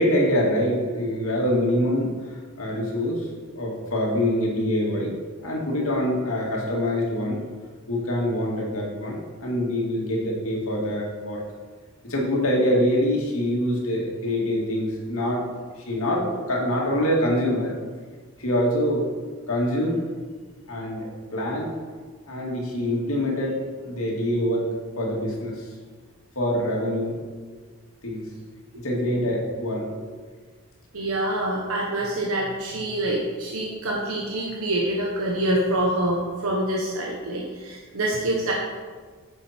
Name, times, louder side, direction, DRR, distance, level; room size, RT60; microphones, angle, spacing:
voice 1, 0.0-3.3 3.5-5.1 5.4-7.4 7.9-11.4 12.0-17.7 18.4-19.1 19.5-20.0 20.7-21.7 22.3-23.6 23.8-24.7 25.0-25.7 26.4-27.2 28.0-28.2 28.8-30.1, equal, 70° left, -2 dB, 2.4 m, -25 dB
voice 2, 30.9-38.5, right 1 dB, 75° right, -2 dB, 1.3 m, -26 dB
9.8 x 7.1 x 4.5 m, 1.5 s
head